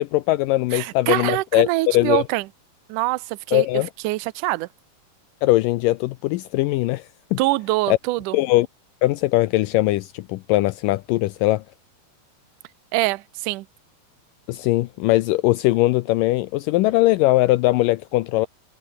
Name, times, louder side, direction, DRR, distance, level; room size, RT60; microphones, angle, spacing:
voice 1, 0.0-2.2 3.5-3.9 5.4-7.1 7.3-7.4 7.9-8.0 8.3-8.7 9.0-11.6 14.5-18.5, left 18 dB, 85° left, 1.9 m, -20 dB
voice 2, 0.7-2.5 2.9-3.7 4.0-4.7 7.4-8.4 12.9-13.7, right 20 dB, 90° right, 1.8 m, -24 dB
omnidirectional pair, 4.5 m